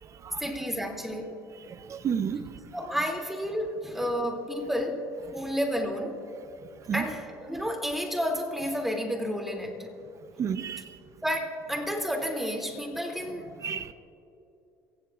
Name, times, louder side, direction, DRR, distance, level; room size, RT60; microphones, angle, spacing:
voice 1, 0.4-1.4 2.7-5.1 5.3-6.2 6.9-9.9 11.2-13.7, equal, 5° right, 1 dB, 2.8 m, -31 dB
voice 2, 1.7-2.5 6.9-7.0 10.4-10.9 13.6-13.9, right 7 dB, 40° right, 12 dB, 0.7 m, -31 dB
28.0 x 16.5 x 2.5 m, 2.7 s
supercardioid pair, 85°, 7 cm